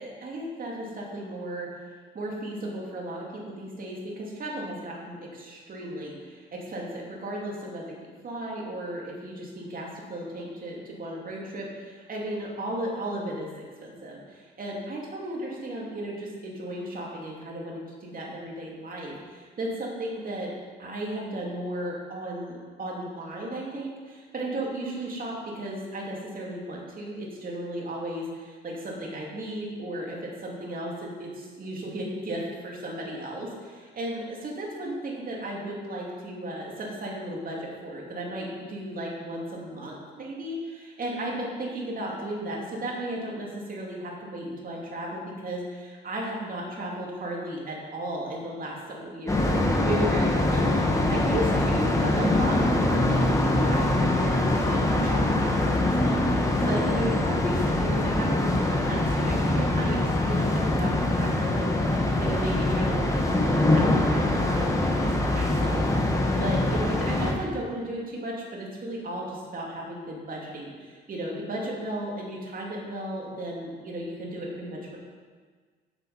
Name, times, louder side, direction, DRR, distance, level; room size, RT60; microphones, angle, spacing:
voice 1, 0.0-1.7 2.1-8.0 8.2-20.5 20.8-54.0 54.2-60.0 60.2-75.0, right 1 dB, 45° right, -2 dB, 2.7 m, -35 dB
sound 1, 49.3-67.3, left 1 dB, 15° left, 1.6 m, -24 dB
8.3 x 7.0 x 5.7 m, 1.5 s
cardioid pair, 90°, 20 cm